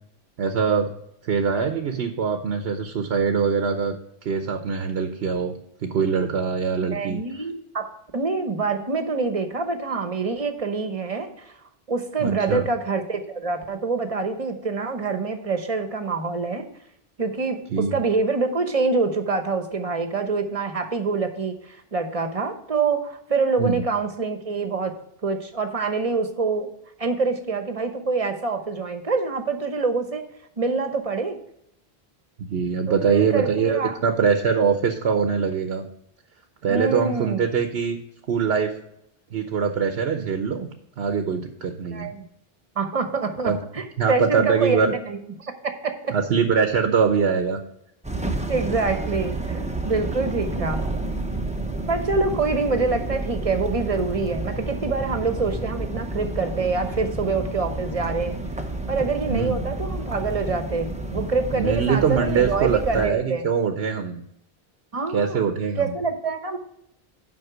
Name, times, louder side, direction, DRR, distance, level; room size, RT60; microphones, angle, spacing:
voice 1, 0.4-0.9 1.2-3.9 4.2-7.2 12.2-12.6 17.7-17.9 23.6-23.8 32.5-35.8 36.6-38.0 38.3-38.7 39.3-40.7 41.0-42.1 43.4-43.6 44.0-44.9 46.1-47.6 59.3-59.7 61.6-64.2 65.1-65.9, right 6 dB, 80° right, 7 dB, 1.0 m, -23 dB
voice 2, 6.9-11.5 11.9-16.7 17.2-24.9 25.2-26.7 27.0-30.3 30.6-31.4 32.9-34.0 36.7-37.5 41.9-42.2 42.7-46.1 48.5-50.9 51.9-58.4 58.9-63.4 64.9-65.4 65.8-66.6, right 4 dB, 35° right, 7 dB, 1.0 m, -26 dB
sound 1, 48.0-63.1, right 2 dB, 10° right, 0.7 m, -30 dB
7.9 x 5.7 x 6.1 m, 0.76 s
omnidirectional pair, 1.0 m